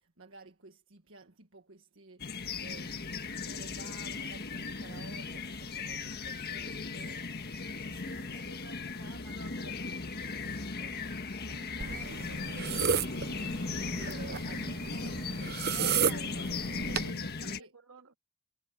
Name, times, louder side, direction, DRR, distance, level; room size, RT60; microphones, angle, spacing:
voice 1, 0.0-7.2 7.8-9.5 9.9-15.5 16.1-16.3 16.7-17.7, right 3 dB, 65° right, 1.6 m, -53 dB
sound 1, 2.2-17.6, left 4 dB, 50° left, 1.5 m, -37 dB
voice 2, 8.1-9.9 11.8-12.4 15.7-16.5 17.1-18.1, right 5 dB, 80° right, 3.0 m, -53 dB
sound 2, 11.8-17.1, right 7 dB, 45° right, 0.8 m, -33 dB
head